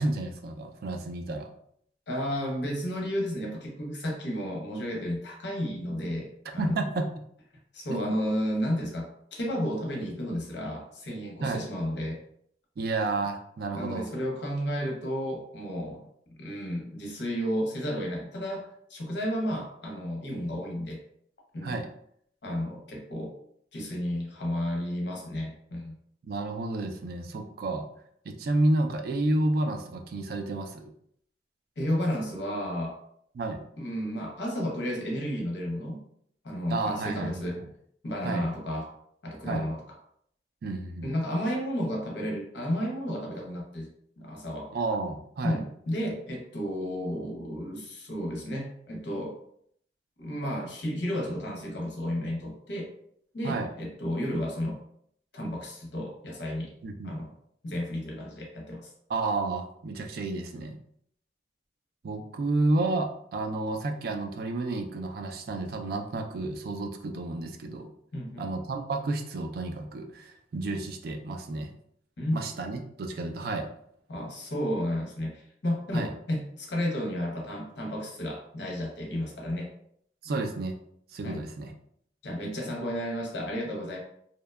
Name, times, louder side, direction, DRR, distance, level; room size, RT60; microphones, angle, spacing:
voice 1, 0.0-1.5 6.6-7.1 7.9-8.1 11.4-11.6 12.8-14.1 21.6-21.9 26.2-27.9 28.3-30.9 33.4-33.6 36.7-37.7 38.2-38.5 39.4-39.6 40.6-41.1 44.7-45.6 53.4-53.7 56.8-57.2 59.1-60.8 62.0-67.9 68.4-71.7 72.3-73.7 75.9-76.1 80.2-80.8 81.1-81.7, right 2 dB, 60° right, 5 dB, 0.3 m, -31 dB
voice 2, 2.1-6.8 7.7-12.2 13.7-16.0 16.4-21.0 21.5-21.8 22.4-23.3 23.7-25.9 31.8-33.0 33.8-36.0 36.4-37.6 38.0-38.9 39.2-39.8 41.0-43.9 44.2-44.7 45.4-49.3 50.2-52.9 53.3-54.8 55.3-56.7 57.0-57.3 57.6-58.9 68.1-68.4 72.2-72.4 74.1-79.7 81.2-81.4 82.2-84.0, equal, 75° left, -1 dB, 0.7 m, -32 dB
2.7 x 2.1 x 2.2 m, 0.68 s
head